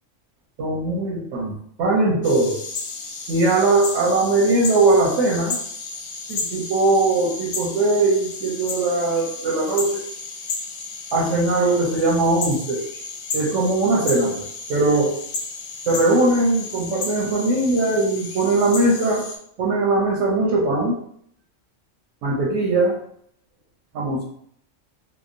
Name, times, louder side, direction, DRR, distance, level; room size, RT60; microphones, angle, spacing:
voice 1, 0.6-2.6 3.3-5.6 6.3-10.0 11.1-12.8 13.3-15.1 15.9-19.3 19.6-21.0 22.2-23.0 23.9-24.2, right 2 dB, 90° right, -2 dB, 1.0 m, -20 dB
sound 1, 2.2-19.4, left 4 dB, 60° left, 0.6 m, -33 dB
2.9 x 2.2 x 2.4 m, 0.67 s
omnidirectional pair, 1.3 m